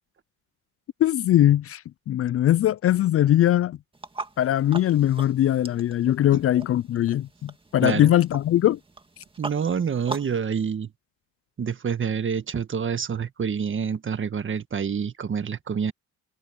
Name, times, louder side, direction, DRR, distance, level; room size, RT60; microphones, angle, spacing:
voice 1, 1.0-3.8 4.4-8.8, left 12 dB, 50° left, 0.4 m, -21 dB
sound 1, 3.9-10.4, right 2 dB, 15° right, 2.2 m, -41 dB
voice 2, 7.8-8.1 9.4-10.9 11.6-15.9, right 7 dB, 40° right, 1.6 m, -27 dB
cardioid pair, 90°, 30 cm